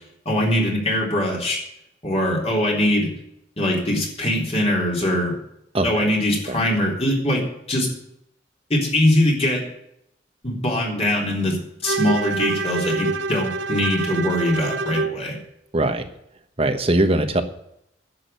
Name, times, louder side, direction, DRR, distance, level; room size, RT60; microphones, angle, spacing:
voice 1, 0.3-1.6 2.0-3.1 3.6-5.4 5.8-7.4 7.7-7.9 8.7-9.6 10.4-11.6 11.8-15.4, left 1 dB, 35° left, -2 dB, 3.7 m, -22 dB
Bowed string instrument, 11.8-15.2, right 3 dB, 90° right, 0.8 m, -26 dB
voice 2, 15.7-16.1 16.6-17.4, right 1 dB, 30° right, 7 dB, 1.2 m, -20 dB
10.5 x 7.6 x 9.2 m, 0.77 s
head